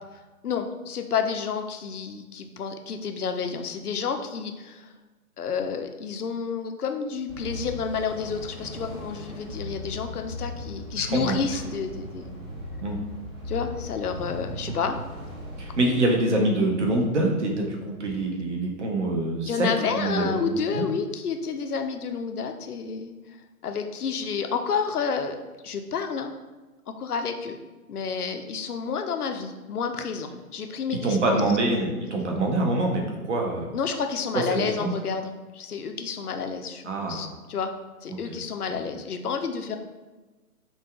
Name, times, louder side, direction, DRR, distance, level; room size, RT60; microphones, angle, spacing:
voice 1, 0.1-4.9 5.4-12.4 13.5-15.0 19.5-23.4 23.6-25.4 25.6-26.4 27.0-27.6 27.9-31.4 33.7-37.7 38.0-39.8, left 6 dB, 75° left, 6 dB, 0.6 m, -30 dB
sound 1, 7.3-15.9, left 1 dB, 15° right, 0.7 m, -38 dB
voice 2, 11.0-11.3 12.8-13.0 14.7-14.8 15.6-20.9 31.0-33.8 34.3-34.9 36.8-37.3 38.1-38.2, right 2 dB, 50° right, 1 dB, 0.8 m, -25 dB
5.2 x 2.3 x 2.3 m, 1.2 s
figure-of-eight pair, 130°, 46 cm